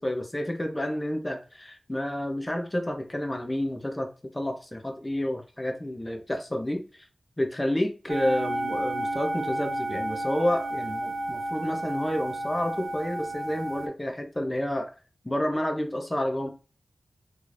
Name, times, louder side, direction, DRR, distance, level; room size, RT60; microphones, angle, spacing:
voice 1, 0.0-7.1 7.4-14.9 15.2-16.5, left 1 dB, 20° left, 0.7 m, -30 dB
sound 1, 8.1-13.9, right 1 dB, 85° right, 0.5 m, -31 dB
3.4 x 3.1 x 2.5 m
wide cardioid pair, 90°, 0 cm